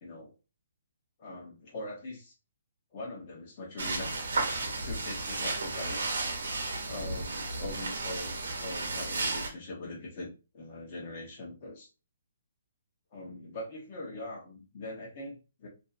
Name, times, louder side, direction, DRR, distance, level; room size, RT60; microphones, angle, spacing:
voice 1, 0.0-0.3 1.2-2.2 2.9-4.3 4.8-6.1 6.8-11.9 13.1-15.7, left 2 dB, 35° left, -1 dB, 0.9 m, -42 dB
sound 1, 3.8-9.5, right 3 dB, 80° right, 0.7 m, -33 dB
2.6 x 2.2 x 2.5 m, 0.30 s
hypercardioid pair, 165°, 0 cm